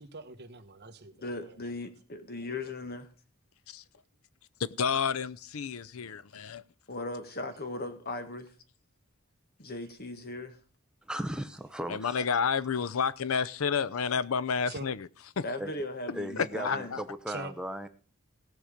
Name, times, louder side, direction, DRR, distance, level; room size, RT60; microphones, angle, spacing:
voice 1, 0.0-1.6 14.6-14.9 17.3-17.5, right 3 dB, 50° right, 6 dB, 1.2 m, -43 dB
voice 2, 1.1-3.1 6.9-8.5 9.6-10.6 15.4-17.0, left 2 dB, 45° left, 8 dB, 1.7 m, -37 dB
voice 3, 4.6-6.6 11.9-15.1 15.4-15.5 16.4-17.0, left 6 dB, 80° left, 17 dB, 0.6 m, -30 dB
voice 4, 11.0-12.3 15.6-15.7 16.1-17.9, equal, 5° right, 9 dB, 0.7 m, -37 dB
18.0 x 6.3 x 5.1 m, 0.40 s
head